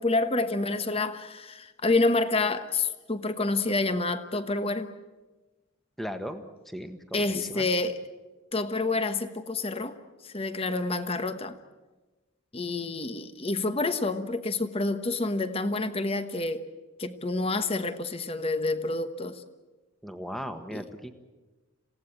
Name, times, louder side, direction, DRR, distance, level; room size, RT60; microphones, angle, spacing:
voice 1, 0.0-4.9 7.1-8.0 8.5-10.0 10.2-11.6 12.5-16.6 17.0-19.4 20.7-20.8, left 3 dB, 25° left, 10 dB, 1.2 m, -28 dB
voice 2, 6.0-7.7 20.0-21.1, equal, ahead, 7 dB, 1.4 m, -37 dB
27.5 x 17.5 x 8.7 m, 1.2 s
head